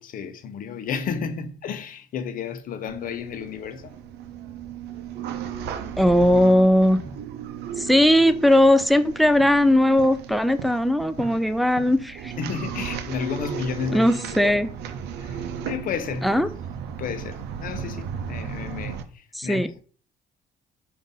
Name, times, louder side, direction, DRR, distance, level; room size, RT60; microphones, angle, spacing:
voice 1, 0.0-3.9 12.4-14.1 14.4-14.5 15.2-15.4 15.6-16.4 17.0-19.6, left 6 dB, 55° left, 0.7 m, -32 dB
sound 1, 2.9-19.0, right 7 dB, 80° right, 0.5 m, -35 dB
voice 2, 6.0-7.0 7.8-12.3 13.9-14.7 16.2-16.5 19.3-19.7, left 1 dB, ahead, 0.3 m, -18 dB
Drum, 7.1-8.6 11.2-13.3, right 3 dB, 45° right, 1.3 m, -47 dB
5.1 x 2.6 x 3.9 m
cardioid pair, 110°, 17 cm